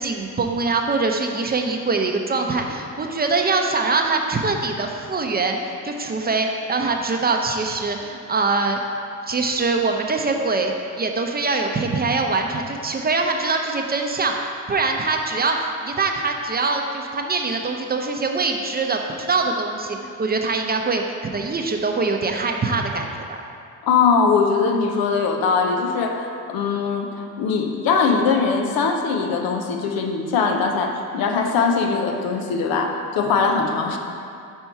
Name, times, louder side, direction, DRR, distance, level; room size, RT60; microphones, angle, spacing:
voice 1, 0.0-5.6 5.8-8.8 9.3-14.3 14.7-23.1, right 3 dB, 25° right, 3 dB, 0.6 m, -23 dB
voice 2, 23.8-34.0, left 5 dB, 70° left, 4 dB, 0.7 m, -21 dB
5.6 x 4.4 x 4.5 m, 2.5 s
supercardioid pair, 75°, 37 cm